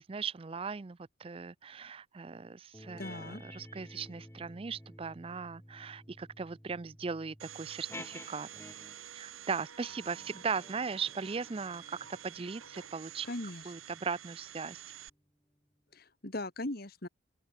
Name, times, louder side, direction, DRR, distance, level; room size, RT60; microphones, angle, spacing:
voice 1, 0.0-8.5 9.2-13.3 13.6-14.8, right 5 dB, 25° right, 0.4 m, -38 dB
sound 1, 2.7-9.1 9.9-14.8, left 1 dB, 10° left, 6.0 m, -52 dB
voice 2, 3.0-3.4 13.3-13.6 15.9-17.1, left 1 dB, 45° left, 2.0 m, -39 dB
Domestic sounds home sounds, 7.4-15.1, right 9 dB, 90° right, 1.9 m, -49 dB
open air
head